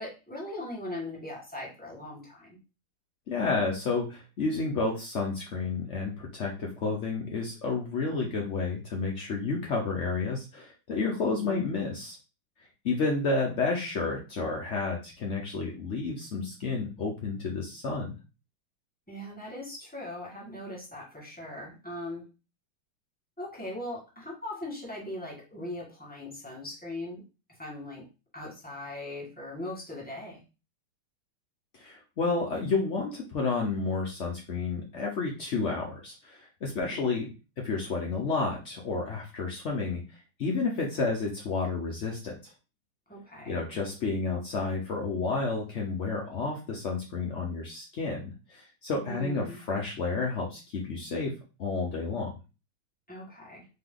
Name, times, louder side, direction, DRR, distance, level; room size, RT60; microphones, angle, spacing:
voice 1, 0.0-2.6 11.2-11.7 19.1-22.2 23.4-27.2 27.5-28.0 28.3-30.4 36.8-37.0 43.1-43.6 49.0-49.6 53.1-53.6, left 1 dB, 5° left, -3 dB, 1.5 m, -40 dB
voice 2, 3.3-12.2 12.8-18.2 31.7-37.3 37.6-42.5 43.5-51.3 51.6-52.3, left 4 dB, 75° left, -1 dB, 0.6 m, -31 dB
3.7 x 3.3 x 3.8 m, 0.30 s
omnidirectional pair, 2.4 m